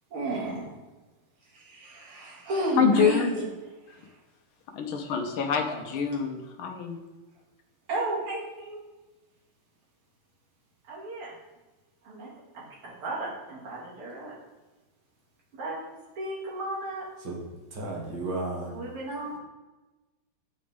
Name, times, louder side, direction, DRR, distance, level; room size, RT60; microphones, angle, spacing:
voice 1, 0.1-0.7 1.5-3.5 4.0-4.1 5.7-5.8 7.9-8.8 10.9-11.3 12.0-14.3 15.5-15.8 16.2-17.1 18.7-19.4, right 2 dB, 85° right, -5 dB, 2.9 m, -32 dB
voice 2, 2.8-3.3 4.7-7.0, left 7 dB, 75° left, 4 dB, 1.5 m, -26 dB
voice 3, 17.7-18.8, right 2 dB, 65° right, -1 dB, 2.2 m, -33 dB
9.4 x 5.1 x 3.5 m, 1.2 s
omnidirectional pair, 2.4 m